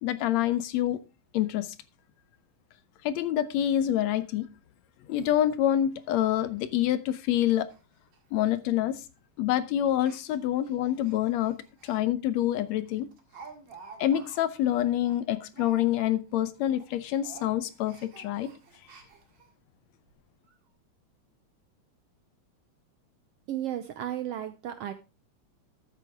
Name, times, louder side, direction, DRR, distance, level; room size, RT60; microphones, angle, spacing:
voice 1, 0.0-1.0 1.3-1.8 3.0-4.5 5.1-7.7 8.3-9.0 9.4-11.6 11.8-13.1 14.0-18.5, left 12 dB, 75° left, 14 dB, 1.8 m, -26 dB
Speech, 5.2-5.3 5.6-5.7 6.1-6.2 6.5-6.7 7.1-7.3 7.5-7.8 8.1-8.2 8.9-9.2 9.9-12.0 12.4-12.5 12.9-16.4 16.7-16.9 17.2-19.5 20.1-20.2 20.4-20.5, right 3 dB, 55° right, 2.8 m, -50 dB
voice 2, 23.5-24.9, right 11 dB, 75° right, 11 dB, 1.5 m, -34 dB
13.0 x 8.5 x 3.5 m, 0.29 s
omnidirectional pair, 3.4 m